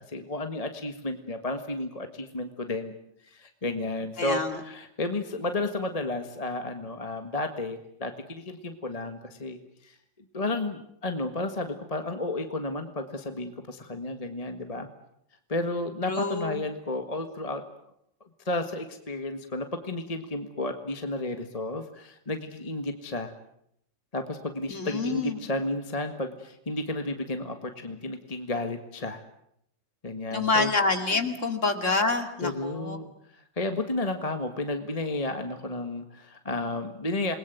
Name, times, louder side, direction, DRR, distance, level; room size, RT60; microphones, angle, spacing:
voice 1, 0.0-2.9 3.2-9.9 10.3-14.9 15.5-17.6 18.4-23.3 24.1-29.2 30.0-30.7 32.4-33.1 33.6-37.4, left 2 dB, 20° left, 7 dB, 1.5 m, -32 dB
voice 2, 4.2-4.6 16.1-16.6 24.7-25.4 30.3-33.0, left 3 dB, 40° left, 7 dB, 2.8 m, -27 dB
28.0 x 21.0 x 9.3 m, 0.75 s
omnidirectional pair, 2.1 m